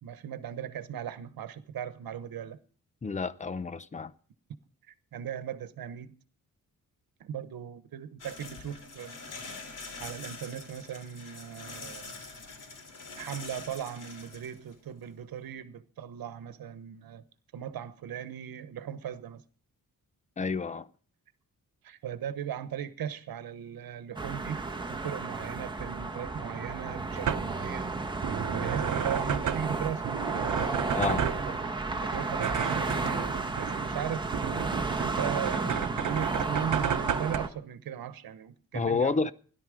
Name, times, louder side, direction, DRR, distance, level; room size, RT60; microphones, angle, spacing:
voice 1, 0.0-2.6 4.9-6.2 7.2-9.2 10.0-12.2 13.2-17.2 17.5-19.4 21.8-24.6 24.9-27.9 28.5-30.1 31.5-34.3 35.0-39.3, right 9 dB, 85° right, 1.1 m, -38 dB
voice 2, 3.0-4.1 20.4-20.9 30.9-31.3 38.7-39.3, left 4 dB, 20° left, 0.6 m, -29 dB
sound 1, 8.2-15.1, left 3 dB, 60° left, 3.3 m, -45 dB
sound 2, 24.2-37.5, right 3 dB, 15° right, 1.2 m, -33 dB
sound 3, 26.7-37.4, right 9 dB, 60° right, 1.0 m, -33 dB
17.0 x 11.5 x 4.9 m
wide cardioid pair, 145°, 35 cm